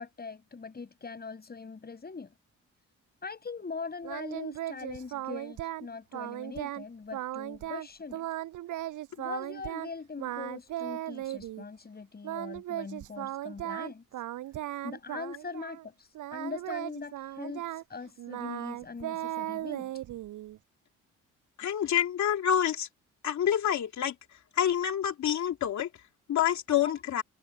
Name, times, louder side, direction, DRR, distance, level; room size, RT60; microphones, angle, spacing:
voice 1, 0.0-2.3 3.2-8.3 9.2-14.0 14.8-19.9, left 4 dB, 30° left, 7.9 m, -41 dB
Singing, 4.0-5.9 6.1-6.8 7.1-7.9 8.1-9.9 10.2-11.6 12.2-15.8 16.2-20.6, right 14 dB, 85° right, 7.8 m, -37 dB
voice 2, 21.6-22.9 23.2-24.1 24.6-25.9 26.3-27.2, left 10 dB, 65° left, 2.6 m, -27 dB
cardioid pair, 90°, 30 cm